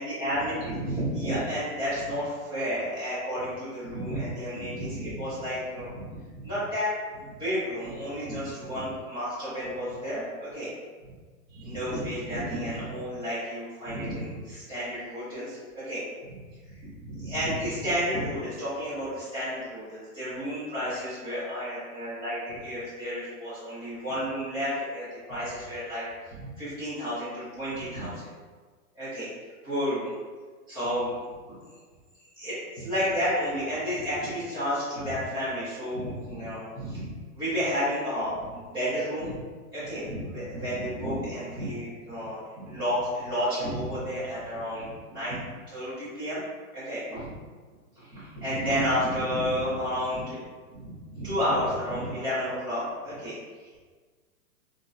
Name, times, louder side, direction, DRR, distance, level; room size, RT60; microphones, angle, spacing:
voice 1, 0.0-10.7 11.0-11.1 11.5-16.3 16.7-28.3 28.9-29.3 29.6-30.1 30.7-31.1 32.4-39.4 39.7-45.4 45.7-46.4 46.7-47.3 48.0-50.4 50.7-53.8, equal, 10° right, -18 dB, 0.5 m, -31 dB
3.8 x 2.1 x 2.3 m, 1.4 s
hypercardioid pair, 150°, 46 cm